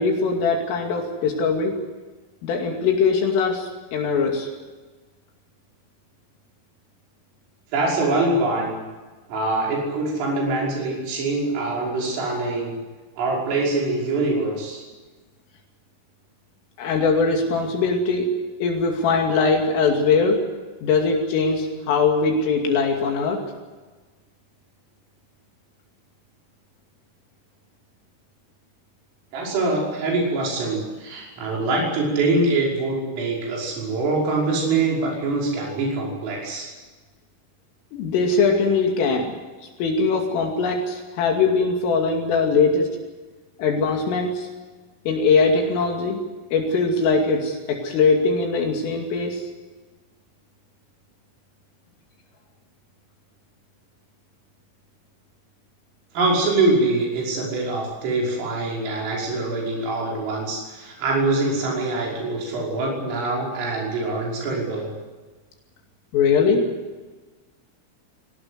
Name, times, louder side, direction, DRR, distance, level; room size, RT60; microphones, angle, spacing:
voice 1, 0.0-1.8 2.4-4.5 16.8-18.3 18.6-20.4 20.8-23.4 37.9-39.4 39.8-42.9 43.6-44.5 45.1-46.2 46.5-49.4 66.1-66.7, left 4 dB, 75° left, 2 dB, 5.0 m, -21 dB
voice 2, 7.7-8.8 9.3-12.8 13.2-14.8 29.3-36.7 56.1-64.9, right 2 dB, 75° right, -2 dB, 8.3 m, -24 dB
24.0 x 18.5 x 8.1 m, 1.3 s
omnidirectional pair, 6.0 m